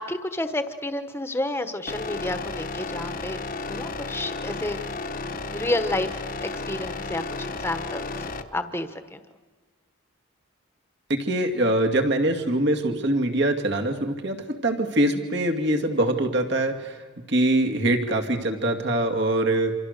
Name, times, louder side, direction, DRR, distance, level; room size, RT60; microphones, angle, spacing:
voice 1, 0.0-3.4 3.7-4.8 5.4-6.1 6.4-8.3 8.5-9.2, left 1 dB, 10° left, 9 dB, 1.3 m, -30 dB
sound 1, 1.9-8.4, left 3 dB, 45° left, 1.2 m, -33 dB
voice 2, 11.1-17.0 17.3-19.7, right 1 dB, 55° right, 3 dB, 2.4 m, -23 dB
27.5 x 27.0 x 6.7 m, 1.4 s
head